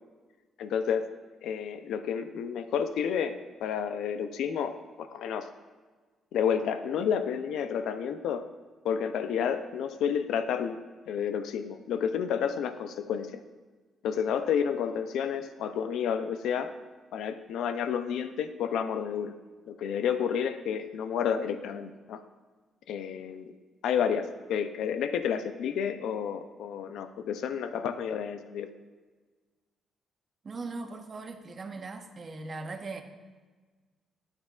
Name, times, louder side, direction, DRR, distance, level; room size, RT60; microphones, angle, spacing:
voice 1, 0.6-1.0 1.4-5.5 6.3-8.5 8.8-10.8 11.1-13.4 14.0-16.7 17.1-19.3 19.7-22.2 22.9-23.5 23.8-28.7, left 7 dB, 80° left, 9 dB, 0.5 m, -30 dB
voice 2, 30.4-33.0, right 3 dB, 40° right, 6 dB, 0.8 m, -39 dB
12.0 x 7.4 x 2.4 m, 1.4 s
cardioid pair, 90°, 0 cm